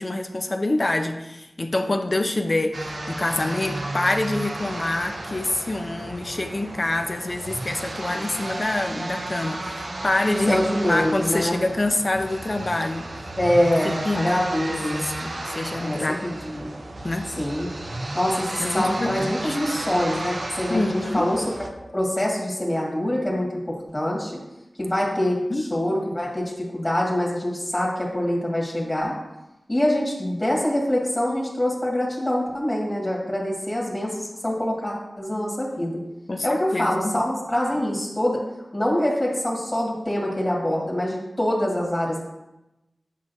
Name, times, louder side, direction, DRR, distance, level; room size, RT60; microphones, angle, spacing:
voice 1, 0.0-13.1 13.8-14.4 14.7-16.2 17.0-17.3 18.6-19.6 20.7-21.3 25.5-25.7 36.3-37.2, left 2 dB, 45° left, 6 dB, 0.6 m, -26 dB
sound 1, 2.7-21.7, right 2 dB, 70° right, 0.7 m, -33 dB
voice 2, 10.5-11.6 13.4-15.0 15.8-16.7 17.4-17.7 18.1-21.4 21.9-24.3 24.8-29.1 29.7-36.0 36.4-38.4 38.7-42.2, left 1 dB, 25° left, -4 dB, 1.8 m, -25 dB
8.4 x 5.4 x 2.7 m, 0.95 s
cardioid pair, 45°, 0 cm